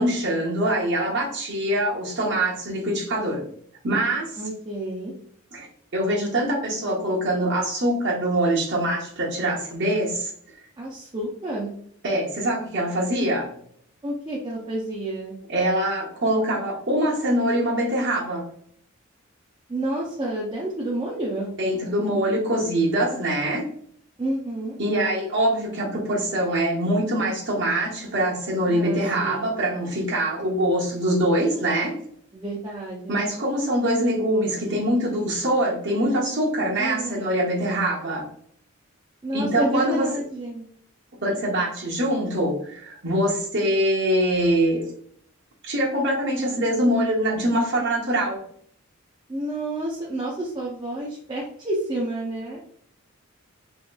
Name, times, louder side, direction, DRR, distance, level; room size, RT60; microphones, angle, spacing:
voice 1, 0.0-3.4 3.8-4.3 5.5-5.7 5.9-10.3 12.0-13.5 15.5-18.5 21.6-23.7 24.8-32.0 33.1-38.3 39.3-40.1 41.2-44.9 45.6-48.4, right 1 dB, 55° right, -2 dB, 0.9 m, -24 dB
voice 2, 4.4-5.1 10.8-11.7 14.0-15.3 19.7-21.5 24.2-24.8 28.7-29.5 32.3-33.2 36.8-37.3 39.2-40.6 49.3-52.7, right 1 dB, 20° right, -4 dB, 0.4 m, -30 dB
2.9 x 2.9 x 2.2 m, 0.64 s
head